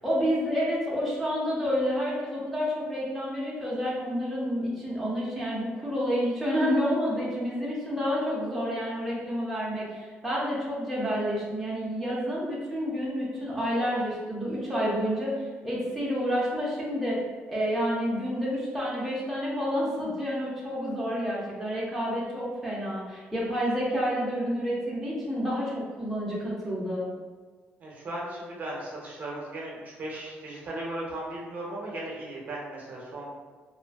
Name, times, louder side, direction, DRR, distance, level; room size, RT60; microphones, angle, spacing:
voice 1, 0.0-17.2 17.5-27.1, equal, ahead, -7 dB, 0.5 m, -29 dB
voice 2, 27.8-33.3, right 1 dB, 40° right, -4 dB, 0.6 m, -37 dB
2.4 x 2.4 x 2.3 m, 1.4 s
cardioid pair, 150°, 4 cm